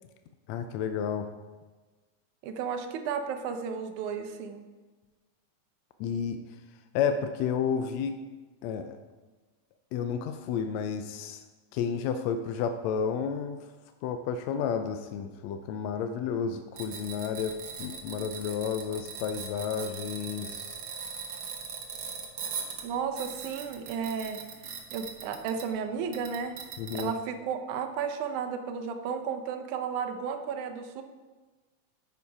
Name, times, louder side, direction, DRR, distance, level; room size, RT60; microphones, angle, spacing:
voice 1, 0.5-1.3 6.0-6.4 6.9-8.2 8.6-9.0 9.9-11.4 11.7-13.6 14.0-17.5 17.8-20.8 26.8-27.1, left 7 dB, 80° left, 7 dB, 1.6 m, -31 dB
voice 2, 2.4-4.6 22.8-26.6 26.9-31.0, right 6 dB, 80° right, 6 dB, 2.2 m, -33 dB
sound 1, 16.8-25.8 26.1-27.0, right 6 dB, 60° right, 1.5 m, -40 dB
9.2 x 7.2 x 4.8 m, 1.3 s
omnidirectional pair, 3.5 m